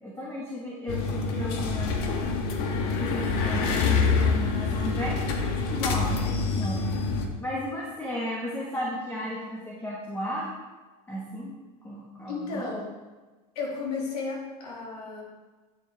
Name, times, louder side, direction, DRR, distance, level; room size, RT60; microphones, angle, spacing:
voice 1, 0.0-1.9 2.8-5.2 5.6-6.9 7.4-10.5 11.1-11.5 11.8-12.7, equal, 10° left, -4 dB, 1.7 m, -34 dB
sound 1, 0.9-7.3, left 4 dB, 60° left, 1.3 m, -26 dB
voice 2, 12.2-13.0 13.5-15.2, left 4 dB, 85° left, -2 dB, 2.6 m, -33 dB
10.5 x 6.9 x 3.6 m, 1.3 s
supercardioid pair, 125°, 19 cm